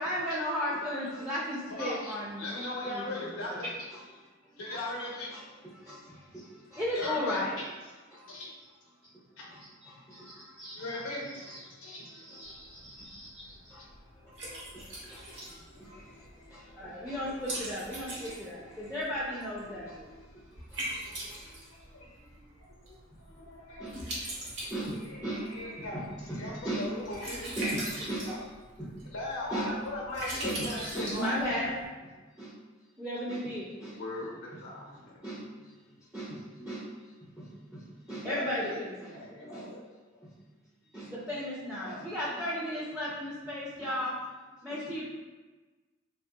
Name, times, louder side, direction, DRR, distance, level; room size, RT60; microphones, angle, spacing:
voice 1, 0.0-2.4 2.8-3.6 4.1-4.2 5.3-7.6 8.1-8.4 9.5-10.5 13.0-13.1 13.7-13.8 14.7-20.1 20.3-21.4 23.8-24.0 24.7-26.9 27.6-28.3 28.8-29.1 29.5-29.7 30.4-32.6 33.0-34.0 34.5-34.6 35.2-39.8 40.2-40.4 40.8-44.1 44.6-45.0, equal, 5° right, -8 dB, 0.4 m, -36 dB
voice 2, 1.0-1.3 1.7-3.7 4.6-5.3 6.9-7.6 8.3-8.5 9.4-9.5 10.7-12.5 13.8-13.9 14.3-17.3 18.1-18.9 19.7-20.6 20.9-22.3 22.9-23.0 23.3-24.1 24.6-28.4 29.1-31.6 33.9-35.2 38.2-38.8 39.1-39.8 41.8-42.1, left 1 dB, 90° left, -3 dB, 0.6 m, -40 dB
voice 3, 10.1-11.6 11.9-13.8, right 1 dB, 90° right, -12 dB, 1.0 m, -50 dB
Liquid, 12.4-31.9, right 1 dB, 60° right, 0.9 m, -42 dB
3.1 x 2.7 x 2.2 m, 1.3 s
head